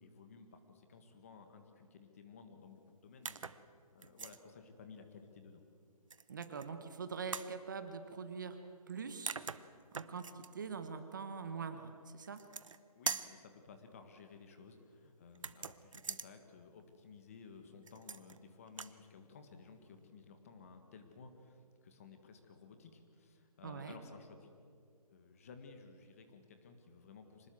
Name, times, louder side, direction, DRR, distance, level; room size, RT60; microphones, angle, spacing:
voice 1, 0.0-3.5 3.9-5.6 12.9-24.6 25.1-27.5, left 5 dB, 25° left, 7 dB, 1.6 m, -56 dB
sound 1, 3.2-3.6 4.0-4.4 6.1-6.7 7.3-7.5 8.9-9.0 9.3-10.5 12.2-12.8 13.1-13.4 15.3-16.3 17.9-18.4 18.7-19.0, right 5 dB, 55° right, 0.9 m, -42 dB
voice 2, 6.3-8.6 8.9-9.4 9.9-11.8 12.1-12.4 23.6-24.0, right 5 dB, 30° right, 8 dB, 1.2 m, -43 dB
25.5 x 19.5 x 7.8 m, 2.3 s
hypercardioid pair, 170°, 20 cm